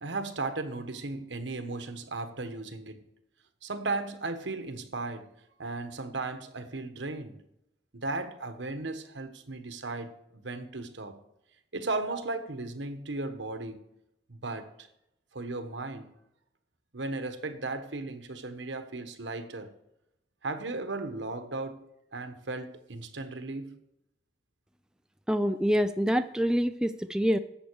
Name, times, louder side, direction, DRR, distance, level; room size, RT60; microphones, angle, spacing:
voice 1, 0.0-3.0 3.6-5.3 5.6-7.4 7.9-11.2 11.7-13.8 14.3-14.9 15.3-16.1 16.9-19.7 20.4-21.8 22.1-23.7, right 3 dB, 75° right, 1.2 m, -36 dB
voice 2, 25.3-27.4, equal, 5° right, 0.3 m, -26 dB
11.5 x 7.9 x 4.6 m
head